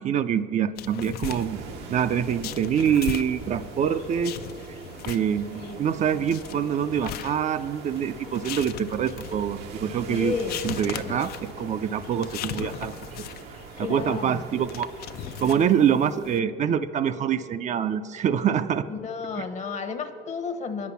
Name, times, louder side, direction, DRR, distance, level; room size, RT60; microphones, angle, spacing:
voice 1, 0.0-1.6 1.9-4.4 5.1-10.4 10.6-12.9 13.5-14.9 15.4-18.9 19.4-19.5, right 8 dB, 45° right, 11 dB, 0.4 m, -25 dB
sound 1, 0.8-16.4, left 10 dB, 70° left, 0.5 m, -39 dB
sound 2, 1.2-15.5, right 5 dB, 85° right, 0.8 m, -42 dB
voice 2, 5.5-5.8 10.1-10.6 13.8-14.4 18.9-20.9, left 5 dB, 45° left, 8 dB, 1.0 m, -32 dB
9.9 x 8.4 x 6.9 m, 2.3 s
cardioid pair, 110°, 17 cm